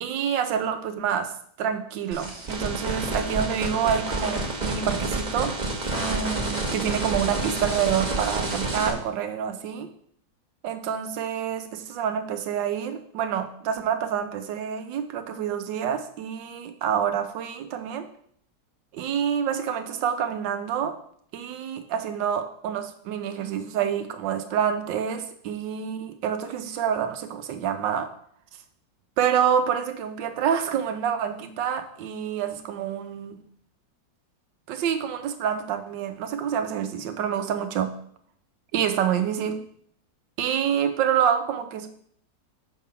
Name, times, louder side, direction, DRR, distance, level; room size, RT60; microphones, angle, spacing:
voice 1, 0.0-1.3 1.6-5.5 6.0-9.9 10.6-18.1 18.9-21.0 21.3-28.1 29.2-33.4 34.7-37.9 38.7-39.6 40.4-41.9, right 8 dB, 85° right, 9 dB, 1.4 m, -27 dB
sound 1, 2.1-8.9, right 2 dB, 30° right, 1.1 m, -29 dB
6.4 x 3.7 x 5.6 m, 0.63 s
omnidirectional pair, 2.0 m